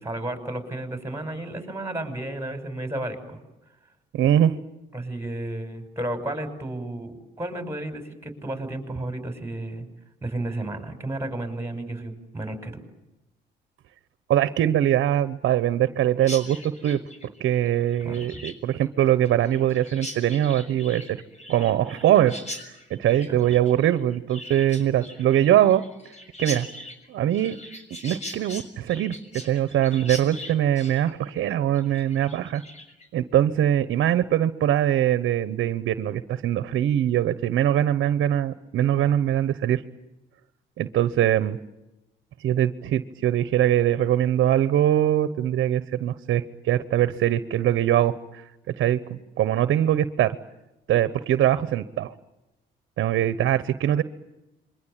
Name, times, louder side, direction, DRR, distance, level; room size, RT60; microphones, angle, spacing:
voice 1, 0.0-3.4 4.9-9.9 10.2-12.8 18.0-18.4 23.3-23.4, right 1 dB, 15° right, 7 dB, 6.0 m, -32 dB
voice 2, 4.1-4.6 14.3-17.0 17.4-21.2 21.5-22.6 22.9-25.8 26.4-26.7 27.1-27.6 28.0-32.6 33.1-39.8 40.8-41.6 42.4-50.4 50.9-52.1 53.0-54.0, right 11 dB, 75° right, 14 dB, 1.1 m, -22 dB
Chirp tweet, 16.2-33.1, left 1 dB, 35° left, 6.6 m, -41 dB
27.0 x 23.0 x 9.1 m, 0.95 s
cardioid pair, 90°, 20 cm